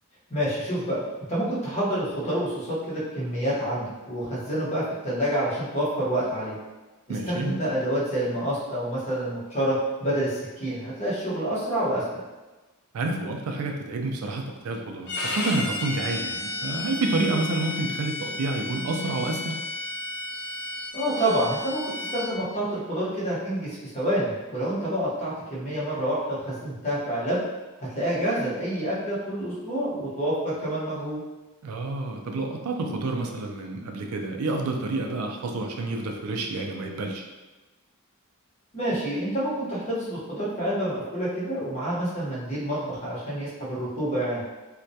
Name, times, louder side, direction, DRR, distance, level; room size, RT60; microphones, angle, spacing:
voice 1, 0.3-1.0 1.3-6.5 7.1-12.2 20.9-27.4 27.8-31.2 38.7-44.4, right 1 dB, 30° left, -9 dB, 0.9 m, -28 dB
voice 2, 7.1-7.6 12.9-19.6 31.6-37.3, right 2 dB, 75° right, 2 dB, 0.3 m, -29 dB
Bowed string instrument, 15.1-22.3, left 2 dB, 50° left, 0.4 m, -33 dB
2.2 x 2.1 x 2.7 m, 1.2 s
head